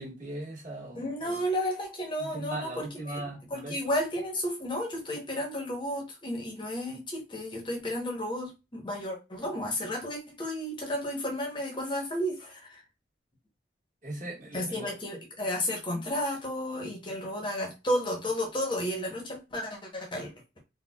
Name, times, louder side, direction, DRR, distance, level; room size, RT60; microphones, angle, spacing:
voice 1, 0.0-1.4 2.2-3.8 14.0-15.0, right 1 dB, 40° right, 1.5 m, -39 dB
voice 2, 0.9-12.8 14.5-20.3, equal, 25° left, 0.8 m, -32 dB
4.1 x 2.2 x 2.2 m
head